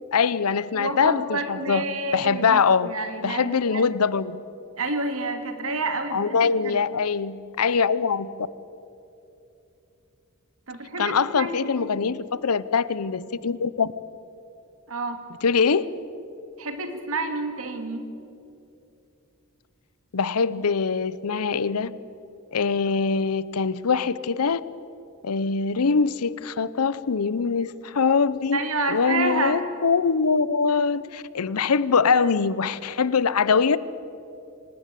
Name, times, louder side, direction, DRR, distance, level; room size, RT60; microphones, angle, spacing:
voice 1, 0.1-1.8 2.1-2.9 3.2-4.4 6.1-8.3 11.0-13.9 15.4-15.9 20.1-21.9 22.5-24.6 25.2-33.8, left 5 dB, 85° left, 18 dB, 0.7 m, -23 dB
voice 2, 0.7-3.8 4.8-6.8 10.7-12.1 14.9-15.2 16.6-18.1 28.5-29.6, right 2 dB, 70° right, 6 dB, 2.3 m, -29 dB
25.0 x 18.5 x 8.4 m, 2.8 s
head